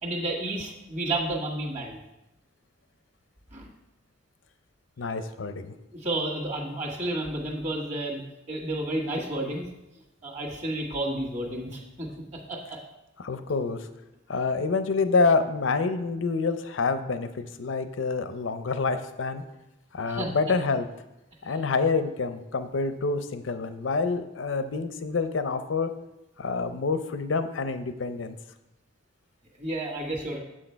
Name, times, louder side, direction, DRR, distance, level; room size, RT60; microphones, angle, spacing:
voice 1, 0.0-2.0 3.5-3.7 5.9-8.2 8.5-9.6 10.2-12.8 20.1-20.3 29.6-30.4, right 1 dB, 40° right, 0 dB, 1.5 m, -31 dB
voice 2, 5.0-5.7 13.2-13.9 14.3-19.4 19.9-20.9 21.4-25.9 26.4-28.4, left 4 dB, 90° left, 10 dB, 0.6 m, -27 dB
7.6 x 6.4 x 4.5 m, 0.96 s
head